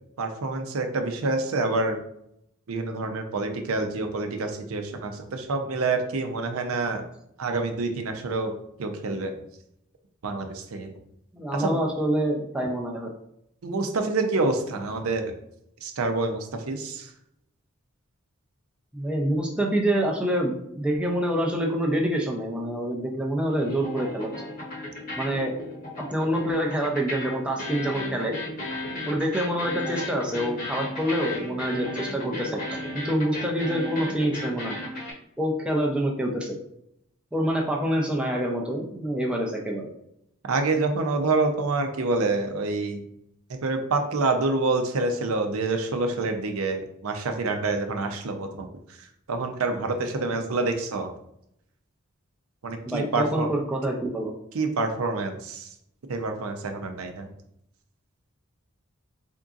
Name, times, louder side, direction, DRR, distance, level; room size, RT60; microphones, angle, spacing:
voice 1, 0.2-2.0 2.7-7.0 7.4-8.5 8.8-9.4 10.2-10.9 11.5-11.8 13.6-15.2 15.8-17.1 40.4-43.0 43.5-48.7 49.0-51.1 52.6-53.5 54.5-55.7 56.1-57.3, right 3 dB, 85° right, 5 dB, 0.6 m, -27 dB
voice 2, 11.3-13.1 18.9-24.5 25.2-25.5 26.0-28.3 29.1-34.8 35.4-36.6 37.3-39.9 52.9-54.3, right 1 dB, 5° right, 0 dB, 0.5 m, -26 dB
sound 1, 21.0-23.2 23.5-35.1, left 1 dB, 40° left, 1.0 m, -35 dB
3.9 x 3.6 x 2.4 m, 0.76 s
head